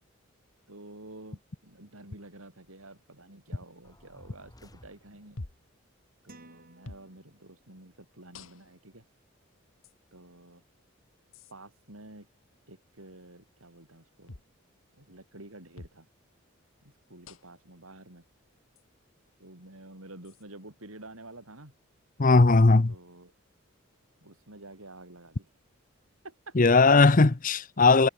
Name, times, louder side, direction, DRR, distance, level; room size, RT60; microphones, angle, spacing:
voice 1, 0.7-5.4 6.2-9.1 10.1-10.6 11.5-12.3 12.7-14.4 15.0-16.1 16.8-18.2 19.4-21.8 22.9-23.3 24.2-25.5 26.2-26.6 27.0-27.3, right 2 dB, 90° right, 7.2 m, -49 dB
sound 1, 3.8-5.5, equal, 20° left, 5.7 m, -55 dB
sound 2, 5.4-5.7 6.8-7.1 8.3-8.8 9.8-9.9 11.3-11.5 14.3-14.5 15.8-16.0 17.2-17.6 18.8-18.9 20.2-20.4, left 2 dB, 75° left, 1.5 m, -46 dB
sound 3, 6.3-7.8, right 2 dB, 45° right, 4.0 m, -56 dB
voice 2, 22.2-22.9 26.6-28.1, left 3 dB, 40° left, 0.8 m, -19 dB
head